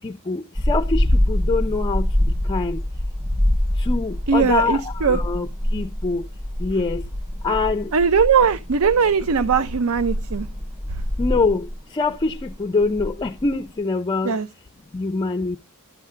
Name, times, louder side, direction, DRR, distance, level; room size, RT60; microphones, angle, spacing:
voice 1, 0.0-2.1 2.5-2.8 3.9-5.5 5.7-6.2 6.6-7.0 7.4-7.9 11.2-11.7 11.9-14.3 14.9-15.6, left 3 dB, 20° left, 0.4 m, -24 dB
sound 1, 0.6-13.8, left 1 dB, 20° right, 5.5 m, -25 dB
voice 2, 4.3-5.2 7.9-10.5 14.2-14.5, right 6 dB, 70° right, 0.5 m, -19 dB
11.5 x 7.5 x 2.4 m
head